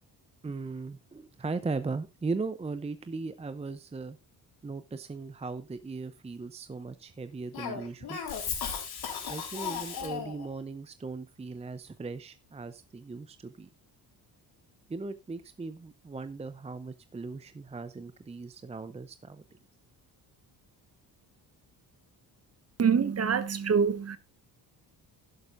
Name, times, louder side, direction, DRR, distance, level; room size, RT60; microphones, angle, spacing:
voice 1, 0.4-4.2 4.6-8.2 9.3-13.7 14.9-19.4, right 4 dB, 15° right, 0.6 m, -38 dB
Cough, 7.5-10.5, left 7 dB, 65° left, 4.0 m, -35 dB
voice 2, 22.8-24.2, right 6 dB, 40° right, 1.1 m, -25 dB
11.5 x 11.0 x 2.6 m
cardioid pair, 105°, 40 cm